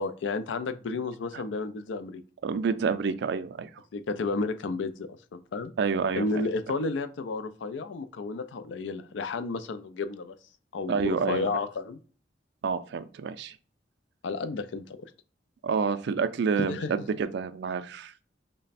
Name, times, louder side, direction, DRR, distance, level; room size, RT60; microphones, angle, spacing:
voice 1, 0.0-2.2 3.9-5.7 6.2-10.4 10.7-12.0 14.2-15.0 16.6-16.9, left 3 dB, 90° left, 11 dB, 0.4 m, -32 dB
voice 2, 2.4-3.7 5.8-6.4 10.9-11.5 12.6-13.6 15.6-18.1, right 5 dB, 65° right, 11 dB, 0.3 m, -28 dB
3.2 x 2.1 x 4.0 m, 0.40 s
head